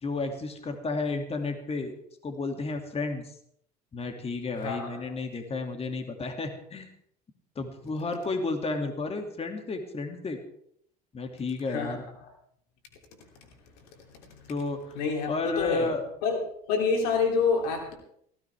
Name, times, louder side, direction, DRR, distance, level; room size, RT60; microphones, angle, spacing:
voice 1, 0.0-1.9 2.2-3.3 3.9-6.9 7.6-10.4 11.1-12.0 14.5-15.0 15.3-16.1, left 3 dB, 30° left, 5 dB, 2.5 m, -32 dB
voice 2, 4.6-5.2 11.7-12.3 14.3-14.4 14.9-15.9 16.2-16.4 16.7-17.9, left 5 dB, 80° left, 3 dB, 3.1 m, -28 dB
18.5 x 15.0 x 3.5 m, 0.69 s
hypercardioid pair, 80°, 20 cm